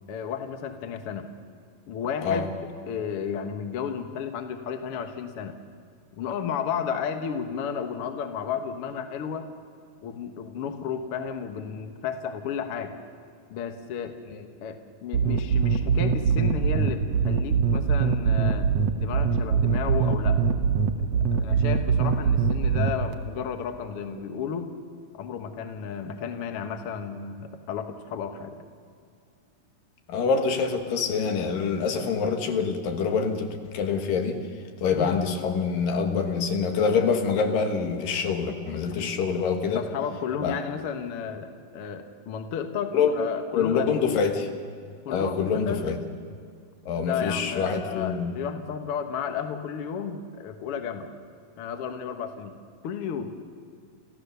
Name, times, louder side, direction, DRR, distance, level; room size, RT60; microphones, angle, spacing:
voice 1, 0.1-1.3 1.9-5.6 6.2-9.4 10.0-12.9 13.5-14.1 14.6-18.7 19.0-20.4 21.3-24.7 25.1-28.6 34.9-35.2 39.0-39.2 39.7-43.9 45.0-45.8 47.0-51.1 51.6-52.5 52.8-53.3, left 7 dB, 55° left, 7 dB, 1.7 m, -33 dB
sound 1, 15.1-23.1, right 6 dB, 70° right, 1.6 m, -22 dB
voice 2, 30.1-34.4 34.8-39.8 40.4-40.6 42.9-43.1 43.5-44.5 45.1-46.0 46.9-48.3, left 5 dB, 80° left, 5 dB, 3.2 m, -25 dB
28.5 x 14.5 x 6.8 m, 2.2 s
omnidirectional pair, 3.9 m